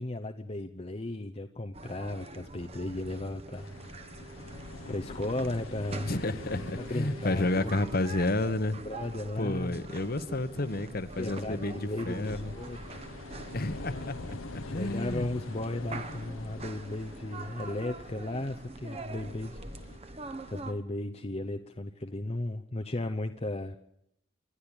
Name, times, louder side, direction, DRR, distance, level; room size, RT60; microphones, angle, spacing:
voice 1, 0.0-3.7 4.2-4.4 4.9-6.1 6.8-7.7 8.8-9.8 11.2-12.8 14.7-19.6 20.0-23.8, left 2 dB, 30° left, 4 dB, 0.8 m, -35 dB
sound 1, 1.7-20.7, right 2 dB, 30° right, 1.1 m, -44 dB
sound 2, 3.5-20.0, left 2 dB, 80° left, 1.1 m, -46 dB
voice 2, 6.0-8.8 9.4-12.5 13.5-15.3, left 2 dB, 45° left, 12 dB, 1.1 m, -31 dB
27.5 x 11.5 x 8.9 m, 0.78 s
head